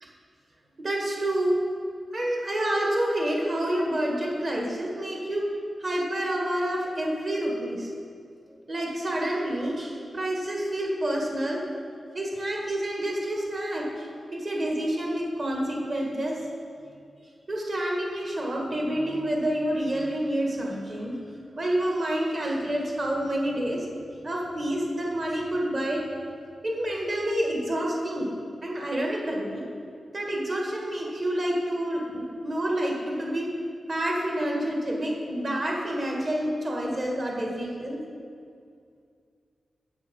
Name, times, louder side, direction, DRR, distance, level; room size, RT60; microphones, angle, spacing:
voice 1, 0.8-1.6 2.1-5.4 5.8-7.9 8.7-11.6 12.1-16.4 17.5-21.2 21.6-23.9 24.2-26.0 26.6-28.3 28.6-29.6 30.1-33.5 33.9-38.0, right 1 dB, 40° right, -1 dB, 1.7 m, -28 dB
7.9 x 7.2 x 5.4 m, 2.3 s
wide cardioid pair, 150°, 0 cm